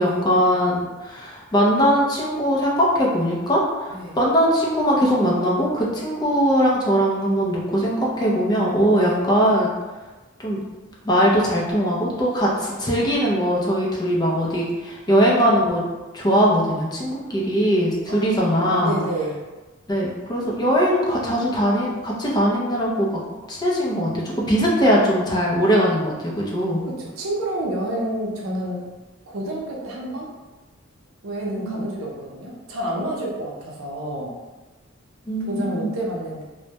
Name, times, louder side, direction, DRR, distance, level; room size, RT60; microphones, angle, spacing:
voice 1, 0.0-9.7 10.4-10.6 11.1-15.8 16.1-19.0 19.9-23.2 23.5-26.8 31.6-31.8 35.3-35.9, equal, 20° left, -4 dB, 0.4 m, -20 dB
voice 2, 3.9-4.2 8.9-9.2 15.1-15.5 18.1-19.4 26.9-28.8 29.3-30.3 31.2-34.3 35.5-36.4, right 1 dB, 85° right, -3 dB, 0.6 m, -29 dB
2.1 x 2.1 x 2.7 m, 1.2 s
head